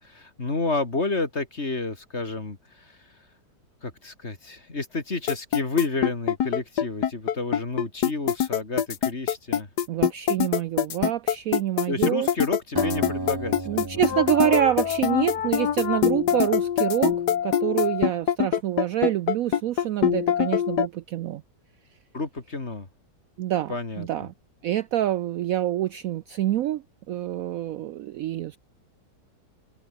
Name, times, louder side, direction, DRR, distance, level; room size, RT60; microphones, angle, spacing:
voice 1, 0.0-3.0 3.8-9.7 11.9-14.0 22.1-22.9 23.7-24.3, left 3 dB, 40° left, 3.2 m, -30 dB
sound 1, 5.3-20.9, left 9 dB, 70° left, 1.7 m, -23 dB
voice 2, 9.9-12.3 13.7-17.2 17.4-21.4 23.4-23.7 24.0-24.3 24.6-28.6, right 12 dB, 70° right, 0.8 m, -26 dB
Acoustic guitar, 12.8-16.3, right 2 dB, 15° right, 1.4 m, -35 dB
omnidirectional pair, 1.9 m